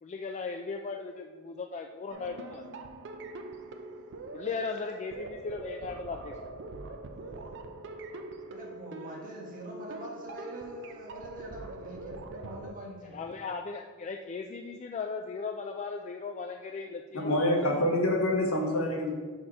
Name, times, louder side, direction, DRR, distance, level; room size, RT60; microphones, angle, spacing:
voice 1, 0.0-2.6 4.3-6.3 13.1-17.9, left 4 dB, 35° left, 4 dB, 0.3 m, -37 dB
sound 1, 2.1-12.7, right 2 dB, 55° right, 0.5 m, -43 dB
voice 2, 8.5-13.3, equal, 40° right, -1 dB, 1.4 m, -43 dB
voice 3, 17.2-19.1, left 1 dB, 85° left, 1 dB, 1.2 m, -26 dB
5.7 x 4.4 x 4.9 m, 1.5 s
head